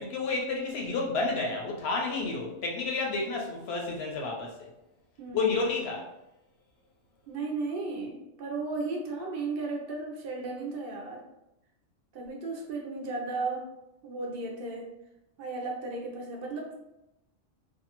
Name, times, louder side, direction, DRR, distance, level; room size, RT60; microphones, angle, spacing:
voice 1, 0.0-4.7 5.3-6.1, left 3 dB, 65° left, 0 dB, 0.7 m, -30 dB
voice 2, 5.2-5.6 7.3-11.2 12.1-13.7 14.0-14.9 15.4-16.7, right 3 dB, 60° right, 0 dB, 0.7 m, -35 dB
2.6 x 2.2 x 2.8 m, 0.90 s
omnidirectional pair, 1.3 m